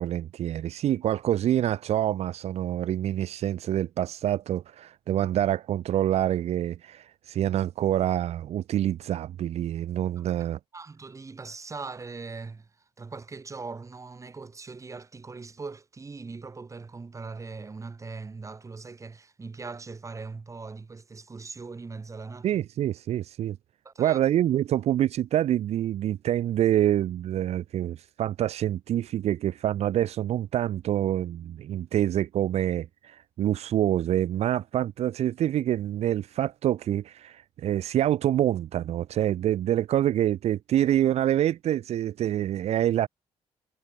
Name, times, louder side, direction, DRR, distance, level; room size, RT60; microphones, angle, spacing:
voice 1, 0.0-10.6 22.4-23.6 24.0-43.1, right 12 dB, 70° right, 0.7 m, -26 dB
voice 2, 10.7-12.7 13.0-22.6 23.8-24.2, right 4 dB, 25° right, 3.4 m, -40 dB
cardioid pair, 100°, 11 cm